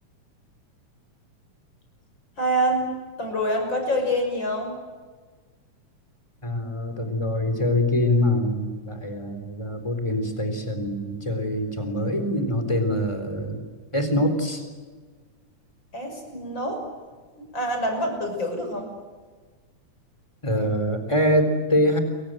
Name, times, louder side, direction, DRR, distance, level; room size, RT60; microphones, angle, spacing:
voice 1, 2.4-2.9 3.2-4.8 15.9-16.8 17.5-18.9, equal, 35° left, 4 dB, 6.7 m, -26 dB
voice 2, 6.4-13.6 13.9-14.6 20.4-22.0, left 1 dB, 10° left, 7 dB, 3.8 m, -24 dB
29.0 x 23.5 x 7.8 m, 1.5 s
omnidirectional pair, 3.5 m